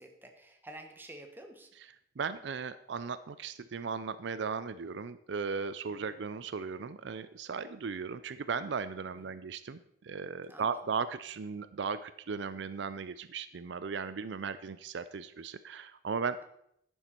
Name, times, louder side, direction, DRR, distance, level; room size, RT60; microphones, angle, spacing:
voice 1, 0.0-1.7 9.1-9.4 10.5-10.8, right 1 dB, 10° right, 4 dB, 1.2 m, -50 dB
voice 2, 2.2-16.4, right 5 dB, 65° right, 14 dB, 0.4 m, -37 dB
11.0 x 9.1 x 4.4 m, 0.75 s
head